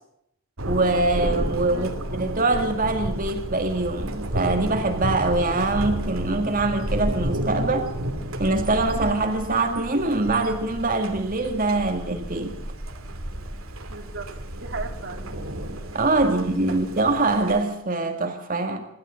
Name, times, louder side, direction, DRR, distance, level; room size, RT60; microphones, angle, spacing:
Thunder, 0.6-17.6, right 1 dB, 80° right, 2.7 m, -31 dB
voice 1, 0.7-7.9 8.4-12.6 15.9-18.9, right 2 dB, 40° right, 5 dB, 1.9 m, -24 dB
voice 2, 13.9-14.3 14.6-15.7 16.2-16.8, right 3 dB, 60° right, 6 dB, 2.1 m, -37 dB
26.5 x 12.5 x 7.9 m, 0.73 s
head